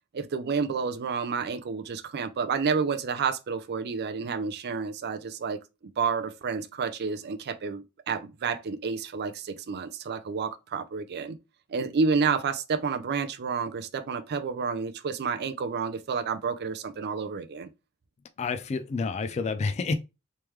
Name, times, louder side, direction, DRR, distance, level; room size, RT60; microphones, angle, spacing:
voice 1, 0.1-5.6 6.0-11.4 11.7-17.7, right 5 dB, 50° right, 0.5 m, -30 dB
voice 2, 18.4-19.9, left 4 dB, 30° left, 0.3 m, -29 dB
3.4 x 3.2 x 3.0 m
head